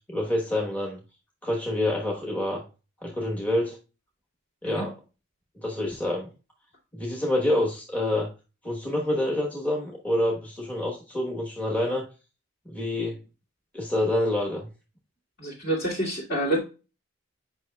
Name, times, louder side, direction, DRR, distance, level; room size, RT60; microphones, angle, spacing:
voice 1, 0.1-1.0 1.4-2.6 3.0-3.8 4.6-4.9 5.5-6.3 6.9-8.3 8.6-12.1 12.6-13.2 13.7-14.7, left 1 dB, 5° left, -2 dB, 1.1 m, -27 dB
voice 2, 15.4-16.6, right 1 dB, 50° left, -4 dB, 2.4 m, -27 dB
9.0 x 5.5 x 2.3 m, 0.33 s
head